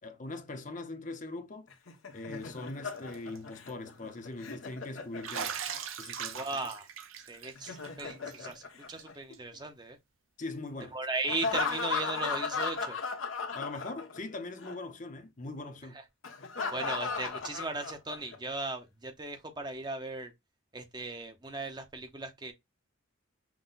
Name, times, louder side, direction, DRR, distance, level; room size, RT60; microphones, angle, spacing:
voice 1, 0.0-1.7 2.1-5.6 6.0-6.4 10.4-11.0 13.5-16.0, left 2 dB, 40° left, 0.7 m, -41 dB
Laughter, 1.7-5.8 7.4-9.6 11.3-14.3 14.6-14.8 16.2-18.4, left 5 dB, 80° left, 1.1 m, -36 dB
Bathtub (filling or washing), 3.0-3.4 3.7-3.8 5.2-8.5 8.9-9.0 9.3-9.4 10.8-10.9 12.6-12.7, right 7 dB, 85° right, 0.7 m, -40 dB
voice 2, 6.3-6.9 7.3-10.0 10.9-13.0 16.7-20.3 20.7-22.5, right 2 dB, 20° right, 0.7 m, -37 dB
6.0 x 2.2 x 3.9 m
head